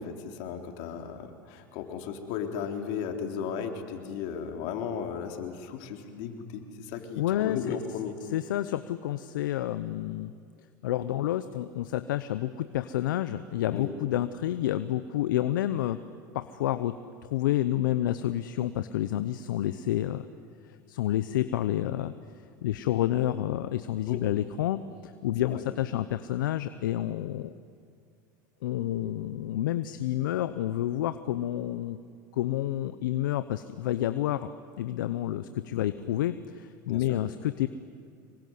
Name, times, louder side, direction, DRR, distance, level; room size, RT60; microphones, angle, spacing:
voice 1, 0.0-8.1 13.7-13.9 24.1-24.2 25.4-25.6 36.9-37.2, left 7 dB, 65° left, 4 dB, 3.5 m, -35 dB
voice 2, 7.2-7.8 8.3-10.3 10.8-16.0 16.3-17.0 17.2-20.3 20.7-22.1 22.6-27.5 28.6-32.0 32.3-34.5 34.8-37.7, left 13 dB, 80° left, 12 dB, 0.9 m, -29 dB
25.5 x 22.5 x 9.6 m, 2.2 s
hypercardioid pair, 95°, 11 cm